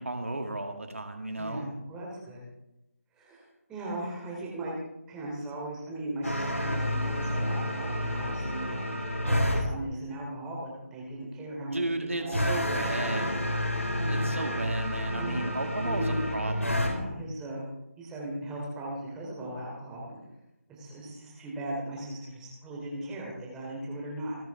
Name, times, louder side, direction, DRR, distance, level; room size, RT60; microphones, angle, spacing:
voice 1, 0.0-1.7 11.7-13.4 14.1-16.8, right 2 dB, 65° right, 5 dB, 2.2 m, -34 dB
voice 2, 1.4-2.5 3.1-4.8 5.1-8.8 9.2-13.1 13.9-14.4 15.1-15.4 15.8-16.2 16.8-17.7 18.0-20.2 20.7-24.4, right 1 dB, 5° right, -3 dB, 3.4 m, -38 dB
sound 1, 6.2-9.6 12.3-16.9, left 1 dB, 75° left, 5.8 m, -29 dB
29.0 x 10.5 x 3.7 m, 0.89 s
figure-of-eight pair, 155°, 8 cm